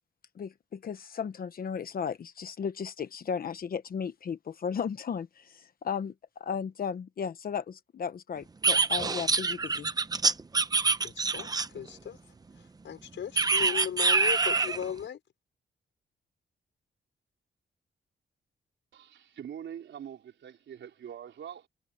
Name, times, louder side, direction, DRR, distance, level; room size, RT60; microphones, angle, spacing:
voice 1, 0.3-9.9, left 7 dB, 50° left, 1.1 m, -35 dB
sound 1, 8.6-11.9 13.4-14.8, right 4 dB, 20° right, 0.7 m, -25 dB
voice 2, 11.0-12.2 12.8-15.2, left 9 dB, 75° left, 5.0 m, -37 dB
voice 3, 18.9-21.7, right 9 dB, 75° right, 4.5 m, -44 dB
wide cardioid pair, 165°, 19 cm